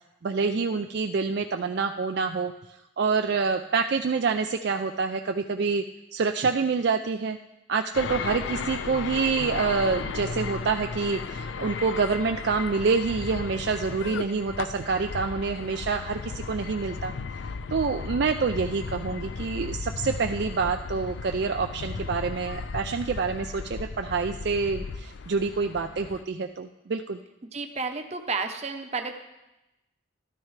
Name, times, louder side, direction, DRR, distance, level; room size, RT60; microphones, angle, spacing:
voice 1, 0.2-2.5 3.0-5.8 6.1-7.4 7.7-17.1 17.7-27.2, right 4 dB, 55° right, 6 dB, 0.4 m, -27 dB
sound 1, 7.9-26.2, left 5 dB, 65° left, 0.4 m, -35 dB
voice 2, 27.5-29.1, right 4 dB, 35° right, 5 dB, 0.8 m, -31 dB
13.0 x 12.5 x 3.3 m, 0.96 s
head